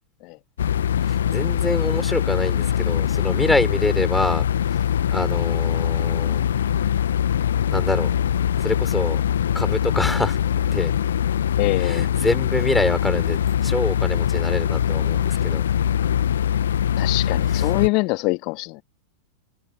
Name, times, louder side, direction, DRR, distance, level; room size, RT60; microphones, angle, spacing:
sound 1, 0.6-17.9, left 9 dB, 65° left, 1.7 m, -22 dB
voice 1, 1.0-4.5 5.1-6.4 7.7-8.1 8.6-9.2 9.5-10.4 10.7-10.9 11.7-15.6 17.5-17.7, left 2 dB, 5° left, 6.3 m, -25 dB
voice 2, 11.6-12.1 17.0-18.8, left 27 dB, 45° left, 2.4 m, -24 dB
figure-of-eight pair, 90°, 0 cm